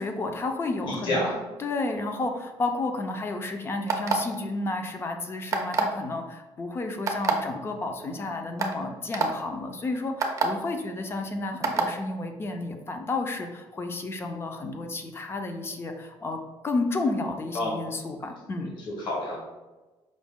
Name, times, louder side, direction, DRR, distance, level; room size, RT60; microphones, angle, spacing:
voice 1, 0.0-16.4 16.6-18.7, left 2 dB, 25° left, 5 dB, 0.4 m, -31 dB
voice 2, 0.8-1.3 17.5-17.7 18.9-19.4, left 1 dB, 55° left, -3 dB, 1.0 m, -28 dB
sound 1, 3.9-4.4 5.5-6.0 7.1-7.3 8.1-8.2 8.6-8.7 9.1-9.3 10.2-10.5 11.6-11.9, right 5 dB, 35° right, 0.4 m, -24 dB
5.0 x 2.1 x 3.5 m, 1.2 s
cardioid pair, 155°, 10 cm